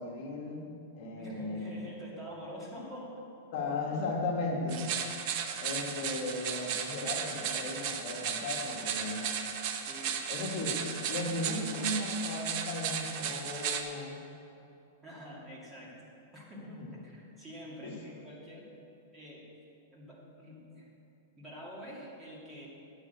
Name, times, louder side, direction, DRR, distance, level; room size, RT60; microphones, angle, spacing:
voice 1, 0.0-1.8 3.5-4.8 5.6-9.2 10.3-14.2 16.8-16.9 17.8-18.0, left 2 dB, 50° left, -1 dB, 1.6 m, -36 dB
voice 2, 1.2-3.2 8.7-10.2 15.0-16.0 16.3-18.7 19.1-19.5 19.9-20.9 21.4-22.7, equal, 10° right, -5 dB, 2.4 m, -47 dB
sound 1, 4.7-13.8, right 8 dB, 45° right, 0.8 m, -35 dB
9.2 x 6.1 x 7.8 m, 2.6 s
hypercardioid pair, 145°, 0 cm